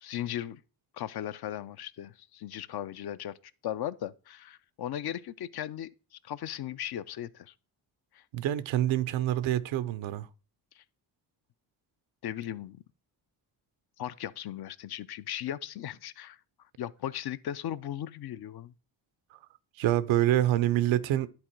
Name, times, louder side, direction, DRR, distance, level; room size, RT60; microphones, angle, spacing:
voice 1, 0.0-0.6 0.9-3.4 3.6-7.5 8.1-8.2 10.8-10.9 12.2-12.8 14.0-16.4 16.8-18.7, left 11 dB, 55° left, 0.6 m, -37 dB
voice 2, 8.3-10.3 19.8-21.3, right 13 dB, 85° right, 0.6 m, -26 dB
10.5 x 3.9 x 4.4 m
supercardioid pair, 55°, 45 cm